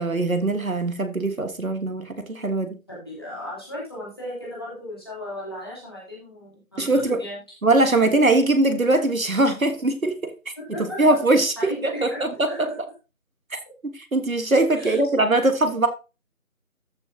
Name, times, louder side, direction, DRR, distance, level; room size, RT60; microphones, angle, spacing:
voice 1, 0.0-2.8 6.8-7.2 7.6-10.3 11.0-11.5 11.8-12.7 13.5-15.9, right 2 dB, 70° right, 1.6 m, -21 dB
voice 2, 2.9-7.4 10.6-11.2 11.6-12.8 14.8-15.4, left 1 dB, 15° left, 3.1 m, -36 dB
13.5 x 6.5 x 2.8 m
figure-of-eight pair, 180°, 43 cm